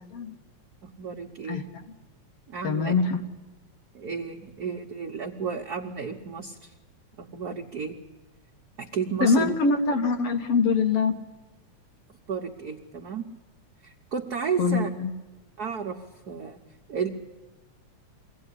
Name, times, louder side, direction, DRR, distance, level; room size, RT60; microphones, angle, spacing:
voice 1, 0.8-1.6 2.5-2.9 3.9-6.7 7.2-8.0 8.8-9.5 12.3-13.3 13.8-14.9 15.6-16.0 16.3-16.6 16.9-17.1, right 6 dB, 60° right, 2 dB, 1.0 m, -32 dB
voice 2, 2.6-3.2 9.2-11.2 14.6-15.1, left 4 dB, 55° left, 7 dB, 2.4 m, -23 dB
24.0 x 17.0 x 10.0 m, 1.2 s
omnidirectional pair, 3.3 m